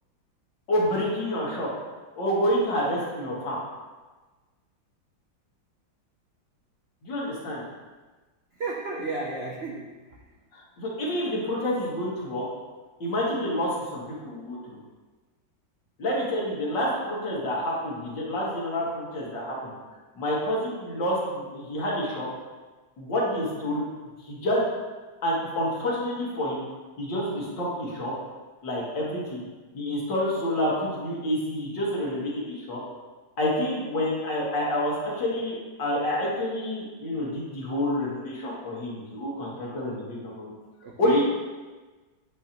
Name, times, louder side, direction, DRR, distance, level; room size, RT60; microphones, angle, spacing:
voice 1, 0.7-1.7 2.2-3.6 7.0-7.6 10.5-12.4 13.0-14.8 16.0-19.7 20.2-22.3 23.0-23.9 24.2-24.7 25.2-26.6 27.0-28.1 28.6-29.4 29.7-32.8 33.4-40.5 41.0-41.2, left 1 dB, 70° left, -5 dB, 2.4 m, -28 dB
voice 2, 8.6-10.2 40.8-41.2, right 3 dB, 85° right, -2 dB, 0.5 m, -33 dB
8.3 x 5.6 x 3.0 m, 1.3 s
omnidirectional pair, 2.1 m